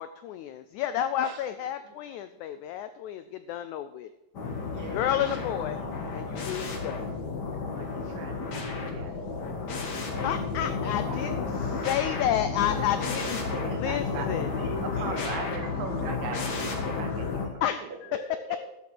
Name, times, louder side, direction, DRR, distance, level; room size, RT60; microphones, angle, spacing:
voice 1, 0.0-3.2 3.5-4.1 4.9-5.8 6.1-7.1 10.2-11.5 11.9-13.4 13.8-14.5 17.6-17.9, left 11 dB, 90° left, 11 dB, 1.7 m, -30 dB
sound 1, 4.3-17.5, left 4 dB, 50° left, 1.3 m, -32 dB
voice 2, 4.7-5.2 10.1-10.3 10.6-11.8 12.7-12.8 13.5-15.2 18.1-18.6, right 1 dB, 40° right, -4 dB, 4.1 m, -42 dB
voice 3, 6.6-7.0 7.5-9.4 13.2-14.3 14.8-17.5 17.7-18.0, right 6 dB, 80° right, 5 dB, 2.9 m, -40 dB
12.5 x 7.3 x 6.1 m, 0.93 s
omnidirectional pair, 4.0 m